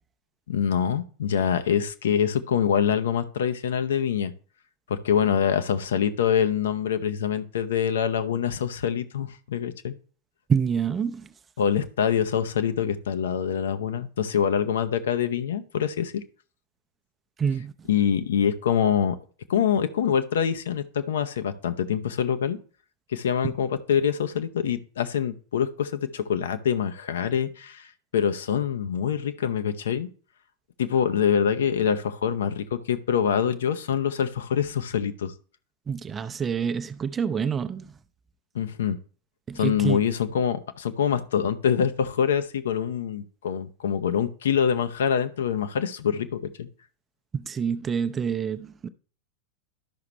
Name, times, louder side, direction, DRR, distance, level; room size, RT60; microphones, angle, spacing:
voice 1, 0.5-4.3 4.9-9.9 11.6-16.2 17.9-19.2 19.5-22.6 23.1-30.1 30.8-35.3 38.5-39.0 39.6-46.7, left 8 dB, 60° left, 0.7 m, -25 dB
voice 2, 10.5-11.3 17.4-17.9 23.4-23.5 35.9-37.9 39.5-40.0 47.3-48.9, right 7 dB, 20° right, 0.6 m, -27 dB
12.0 x 5.8 x 3.2 m
figure-of-eight pair, 90°, 0 cm